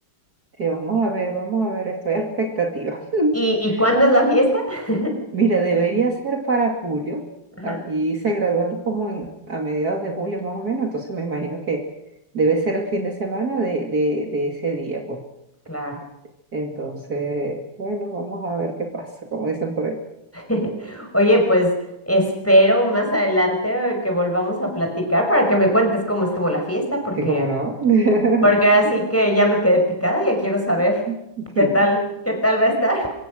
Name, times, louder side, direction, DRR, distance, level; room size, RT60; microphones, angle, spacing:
voice 1, 0.6-3.4 3.7-3.8 5.3-7.2 7.6-11.8 12.3-15.2 16.5-20.0 27.2-28.6 31.1-31.9, right 3 dB, 45° right, 2 dB, 3.1 m, -23 dB
voice 2, 3.3-5.1 7.6-7.8 15.7-16.0 20.3-21.7 22.1-27.5 28.4-31.0 31.6-32.0 32.3-33.1, equal, 5° left, 2 dB, 5.5 m, -19 dB
25.0 x 24.5 x 6.4 m, 0.85 s
omnidirectional pair, 2.3 m